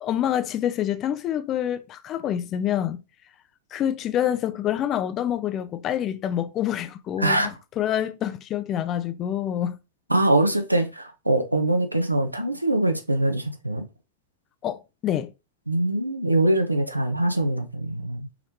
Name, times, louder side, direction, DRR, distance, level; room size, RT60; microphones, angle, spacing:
voice 1, 0.0-3.0 3.7-9.8 14.6-15.3, left 10 dB, 30° left, 0.4 m, -27 dB
voice 2, 7.2-7.5 10.1-13.8 15.7-18.3, right 1 dB, 85° right, 0.6 m, -23 dB
3.9 x 3.1 x 2.8 m
figure-of-eight pair, 90°, 0 cm